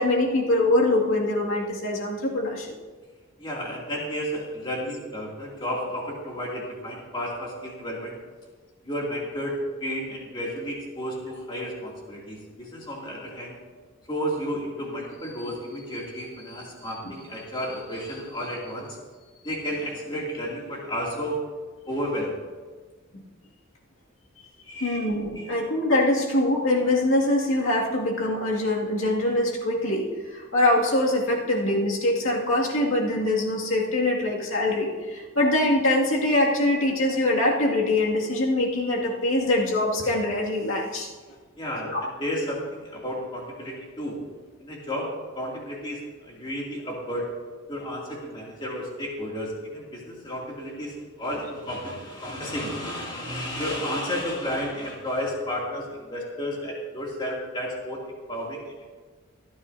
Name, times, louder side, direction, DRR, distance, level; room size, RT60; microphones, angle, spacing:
voice 1, 0.0-2.7 23.1-23.2 24.8-41.1 41.8-42.0, left 1 dB, 70° left, -2 dB, 2.3 m, -23 dB
voice 2, 3.4-8.1 8.8-13.6 14.1-19.0 19.4-21.4 21.9-22.3 24.7-25.1 25.4-25.5 41.6-44.2 44.6-47.3 47.7-58.0 58.3-58.6, equal, 20° left, -3 dB, 2.6 m, -32 dB
25.0 x 9.5 x 2.7 m, 1.4 s
head